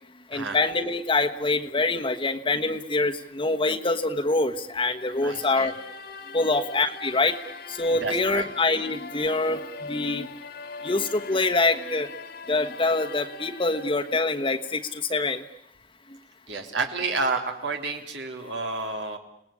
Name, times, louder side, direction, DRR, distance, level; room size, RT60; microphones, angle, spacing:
voice 1, 0.3-5.7 6.3-7.4 7.7-10.3 10.8-12.1 12.5-15.4, left 3 dB, 30° left, 4 dB, 1.3 m, -25 dB
sound 1, 5.0-15.0, left 4 dB, 60° left, 1.9 m, -42 dB
voice 2, 5.2-5.7 8.0-8.5 16.5-19.2, right 3 dB, 75° right, 4 dB, 3.3 m, -30 dB
30.0 x 19.5 x 8.6 m, 0.77 s
head